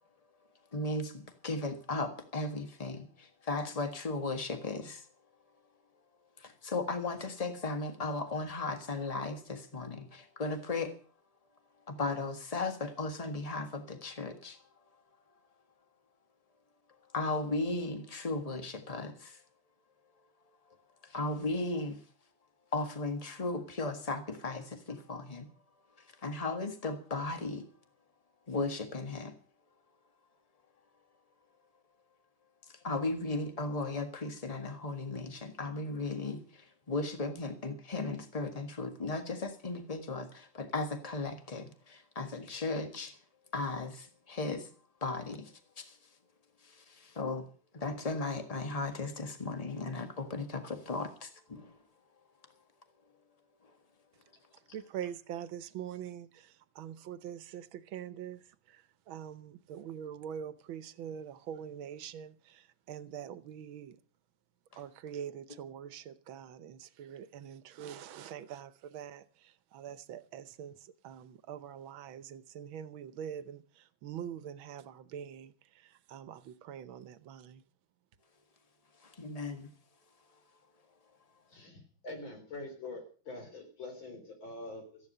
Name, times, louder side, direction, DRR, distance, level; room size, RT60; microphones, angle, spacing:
voice 1, 0.7-5.1 6.4-11.0 11.9-14.6 17.1-19.4 21.0-22.0 22.7-25.5 26.0-27.7 28.5-29.4 32.8-43.2 43.5-44.7 45.0-46.0 46.6-51.8 53.6-53.7 79.0-79.7, left 3 dB, 20° left, 1.6 m, -36 dB
voice 2, 54.7-64.0 64.8-77.6, right 9 dB, 85° right, 1.7 m, -44 dB
voice 3, 81.5-85.0, left 2 dB, 80° left, 4.7 m, -45 dB
14.5 x 10.5 x 6.7 m
omnidirectional pair, 2.1 m